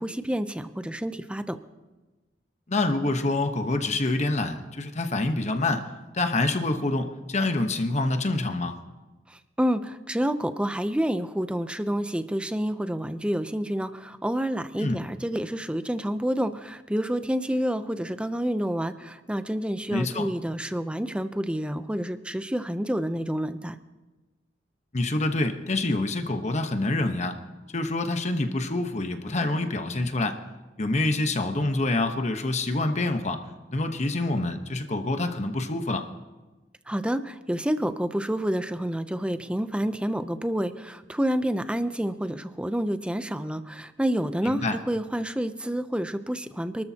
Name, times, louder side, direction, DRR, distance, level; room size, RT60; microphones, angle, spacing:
voice 1, 0.0-1.6 9.3-23.8 36.9-46.8, equal, 5° right, 11 dB, 0.6 m, -28 dB
voice 2, 2.7-5.8 6.1-8.7 14.8-15.0 19.9-20.3 24.9-27.4 27.7-30.4 30.8-33.4 33.7-36.1 44.4-44.8, left 2 dB, 40° left, 7 dB, 1.1 m, -26 dB
27.5 x 13.0 x 2.9 m, 1.2 s
head